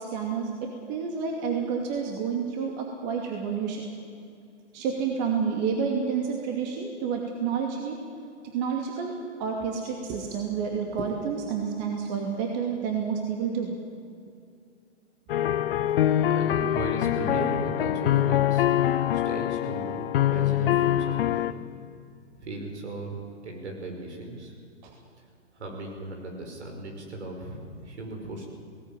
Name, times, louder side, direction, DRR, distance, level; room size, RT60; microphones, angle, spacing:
voice 1, 0.0-3.8 4.7-8.0 8.4-13.7 24.8-24.9, right 6 dB, 35° right, 1 dB, 2.5 m, -29 dB
sound 1, 15.3-21.5, left 12 dB, 50° left, 0.9 m, -24 dB
voice 2, 16.3-18.7 19.1-21.5 22.4-24.5 25.5-28.5, right 2 dB, 70° right, 2 dB, 5.7 m, -36 dB
18.0 x 18.0 x 9.2 m, 2.5 s
hypercardioid pair, 130°, 35 cm